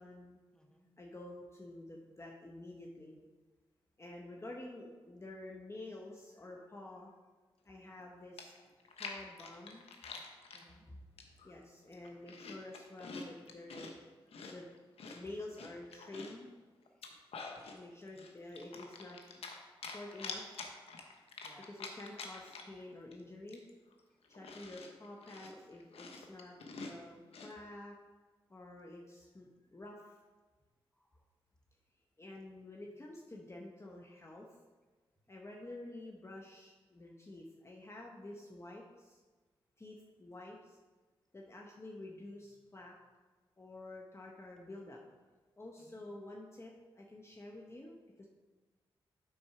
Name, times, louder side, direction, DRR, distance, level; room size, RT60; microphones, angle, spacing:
voice 1, 0.0-0.4 1.0-3.2 4.0-7.1 7.6-8.5 8.9-9.9 11.4-13.9 14.5-14.7 15.1-16.5 17.7-19.4 19.8-20.5 21.7-23.6 24.3-27.9 28.5-30.2 32.2-34.5 35.3-39.2 39.8-40.8 41.3-42.9 43.6-45.0 45.6-48.3, left 2 dB, 25° left, -1 dB, 1.0 m, -49 dB
voice 2, 0.5-0.9 10.5-10.9 16.9-17.2 18.1-18.3 21.4-21.7 24.1-24.2 30.9-31.2 45.8-46.0, equal, 5° left, 2 dB, 1.5 m, -65 dB
Chewing mastication, 8.0-8.1 8.4-10.6 11.2-11.5 11.9-13.9 14.3-16.4 16.9-17.8 18.2-19.6 19.8-22.8 23.1-23.2 23.5-27.5, left 4 dB, 75° left, 1.0 m, -47 dB
8.0 x 4.3 x 5.7 m, 1.3 s
cardioid pair, 55°, 10 cm